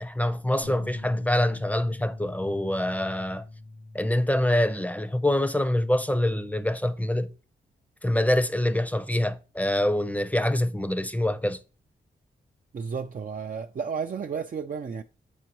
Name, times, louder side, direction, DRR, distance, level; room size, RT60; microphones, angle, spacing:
voice 1, 0.0-3.4 3.9-7.3 8.0-11.6, left 1 dB, 5° left, 0.7 m, -25 dB
Bass guitar, 0.6-6.9, left 2 dB, 80° left, 2.1 m, -43 dB
voice 2, 12.7-15.0, right 6 dB, 45° right, 0.5 m, -32 dB
7.1 x 4.4 x 3.0 m
supercardioid pair, 45°, 20 cm